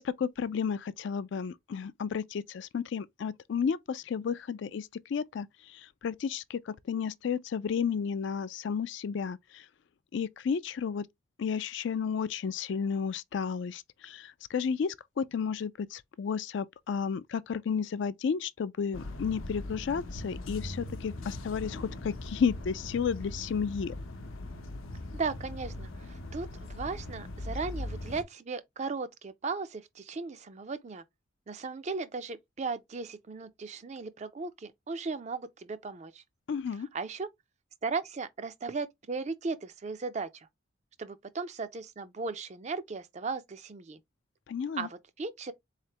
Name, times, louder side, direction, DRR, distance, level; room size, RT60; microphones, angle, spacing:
voice 1, 0.0-5.5 5.7-9.6 10.1-11.0 11.4-23.9 36.5-36.9 44.5-44.9, left 6 dB, 60° left, 0.3 m, -32 dB
sound 1, 18.9-28.2, left 1 dB, 85° left, 0.7 m, -40 dB
voice 2, 25.1-31.0 31.5-36.2 36.9-37.3 37.8-40.5 41.0-44.0 44.8-45.5, right 4 dB, 35° right, 0.4 m, -36 dB
4.0 x 3.2 x 2.8 m
head